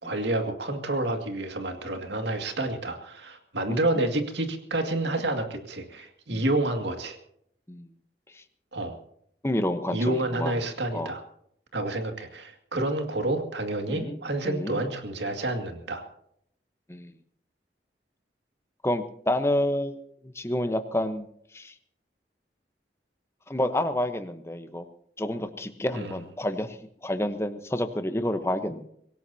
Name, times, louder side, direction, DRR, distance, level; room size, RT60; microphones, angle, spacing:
voice 1, 0.0-7.2 8.7-9.0 9.9-11.2 11.7-16.0 25.9-26.1, right 2 dB, 85° right, 5 dB, 2.2 m, -29 dB
voice 2, 9.4-10.5 10.9-11.1 13.9-14.2 14.4-14.8 16.9-17.1 18.8-21.3 21.5-21.7 23.5-24.8 25.2-28.9, left 1 dB, 15° left, 8 dB, 1.0 m, -29 dB
24.5 x 17.0 x 2.8 m, 0.70 s
head